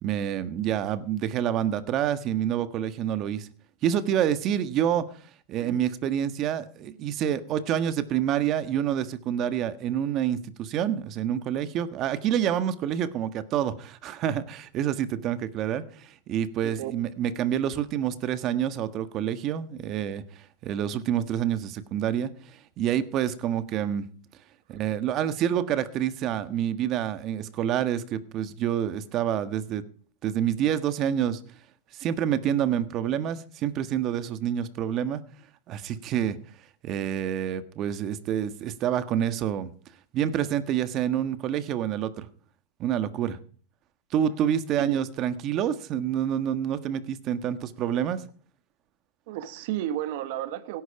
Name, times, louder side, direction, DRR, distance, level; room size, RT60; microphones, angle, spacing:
voice 1, 0.0-3.5 3.8-5.1 5.5-20.2 20.6-22.3 22.8-24.1 24.7-29.8 30.2-31.4 32.0-35.2 35.7-36.4 36.8-39.7 40.1-42.3 42.8-43.4 44.1-48.2, right 10 dB, 40° right, 1.5 m, -27 dB
voice 2, 49.3-50.8, right 12 dB, 65° right, 1.4 m, -32 dB
17.0 x 11.0 x 4.9 m
supercardioid pair, 125°, 0 cm